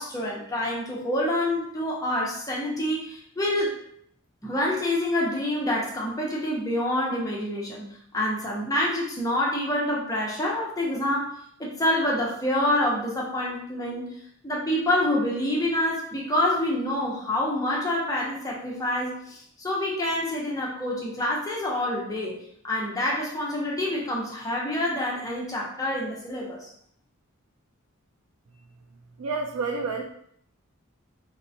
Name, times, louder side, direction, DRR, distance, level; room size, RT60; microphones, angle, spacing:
voice 1, 0.0-3.8 4.4-7.9 8.1-11.3 11.6-14.2 14.4-22.4 22.6-26.7, left 1 dB, 15° left, -4 dB, 0.6 m, -27 dB
voice 2, 29.2-30.0, right 4 dB, 85° right, 2 dB, 0.4 m, -29 dB
4.3 x 2.1 x 2.6 m, 0.68 s
head